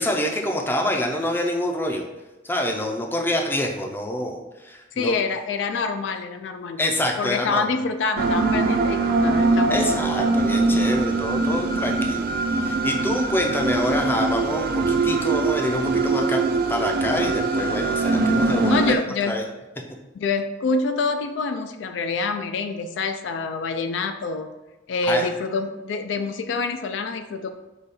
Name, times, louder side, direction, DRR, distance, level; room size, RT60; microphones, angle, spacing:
voice 1, 0.0-2.0 2.4-5.1 6.8-7.7 9.7-12.3 12.6-19.0 19.3-19.4 25.1-25.2, left 1 dB, 10° left, 1 dB, 0.4 m, -26 dB
voice 2, 5.0-6.8 7.2-9.8 18.6-19.4 20.1-24.5 24.9-27.5, left 4 dB, 70° left, 8 dB, 0.3 m, -26 dB
sound 1, 8.2-19.0, right 3 dB, 50° right, 0.4 m, -22 dB
5.0 x 2.3 x 4.1 m, 1.1 s
head